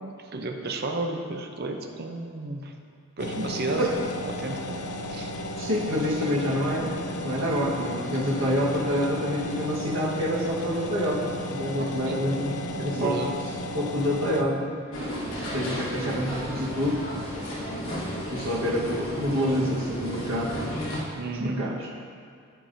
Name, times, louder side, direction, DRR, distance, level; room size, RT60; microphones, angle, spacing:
voice 1, 0.0-2.7 3.2-3.9 4.2-4.7 5.1-5.3 11.8-12.2 12.9-13.4 21.2-21.6, right 2 dB, 45° right, 3 dB, 0.6 m, -32 dB
sound 1, 3.2-14.4, left 1 dB, 80° left, 0.6 m, -34 dB
voice 2, 5.6-13.2 13.7-14.7 15.4-17.0 17.4-20.5 21.4-21.9, equal, 65° right, -5 dB, 1.4 m, -27 dB
sound 2, 14.9-21.0, equal, 65° left, 1.4 m, -33 dB
13.5 x 4.6 x 2.7 m, 2.2 s
head